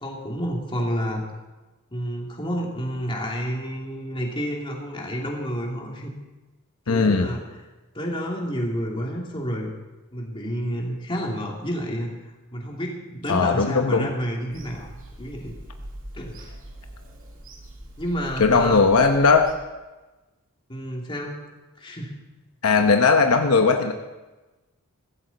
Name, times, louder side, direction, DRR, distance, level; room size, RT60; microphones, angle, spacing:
voice 1, 0.0-1.3 1.9-6.1 6.9-7.6 7.9-9.7 10.1-12.2 12.5-14.9 15.2-15.5 16.1-16.4 18.0-18.8 20.7-21.4 21.8-22.1, equal, 25° left, -1 dB, 2.6 m, -29 dB
voice 2, 6.9-7.3 13.3-14.1 18.4-19.5 22.6-23.9, left 4 dB, 75° left, 5 dB, 0.9 m, -18 dB
Bird vocalization bird call bird song / Telephone, 14.5-19.5, right 1 dB, 60° right, 2.4 m, -42 dB
15.5 x 15.0 x 4.1 m, 1.1 s
head